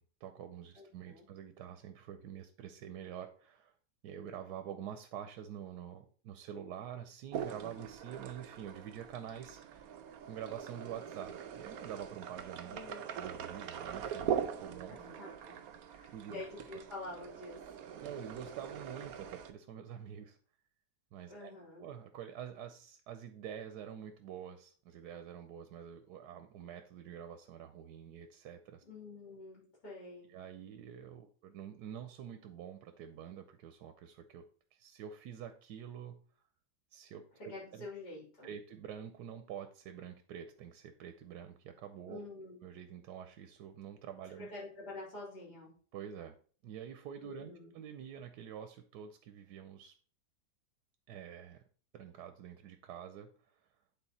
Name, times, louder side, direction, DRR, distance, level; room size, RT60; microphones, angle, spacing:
voice 1, 0.0-3.7 4.0-12.8 13.1-15.0 16.1-16.4 16.7-16.8 18.0-20.4 21.1-21.5 21.8-28.8 30.3-34.4 34.7-36.2 36.9-37.9 38.4-42.2 42.6-44.5 45.9-46.3 46.6-49.9 51.1-51.6 51.9-53.7, right 9 dB, 90° right, 8 dB, 1.2 m, -47 dB
voice 2, 0.8-1.3 12.7-13.0 14.9-15.6 15.9-17.6 21.3-21.9 28.9-30.3 37.5-38.5 42.1-42.6 44.4-45.7 47.2-47.7, left 2 dB, 85° left, -4 dB, 3.8 m, -47 dB
sound 1, 7.3-19.5, right 8 dB, 65° right, 1.1 m, -42 dB
9.0 x 4.1 x 4.1 m, 0.43 s
omnidirectional pair, 1.7 m